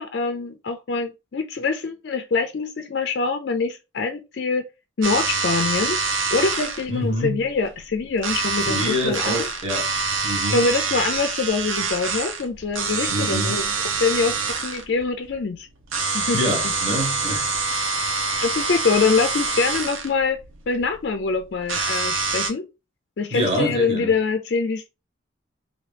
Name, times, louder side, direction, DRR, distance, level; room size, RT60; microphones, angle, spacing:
voice 1, 0.0-4.6 5.0-9.5 10.5-13.7 14.0-15.7 16.1-17.0 18.4-20.4 20.7-22.7 23.2-24.9, left 4 dB, 55° left, 0.4 m, -24 dB
sound 1, 5.0-22.5, right 4 dB, 85° right, 0.7 m, -26 dB
voice 2, 6.9-7.4 8.7-9.9 10.2-10.7 13.1-13.6 16.3-17.5 23.3-24.1, equal, 30° right, 1.2 m, -26 dB
2.9 x 2.7 x 3.3 m
head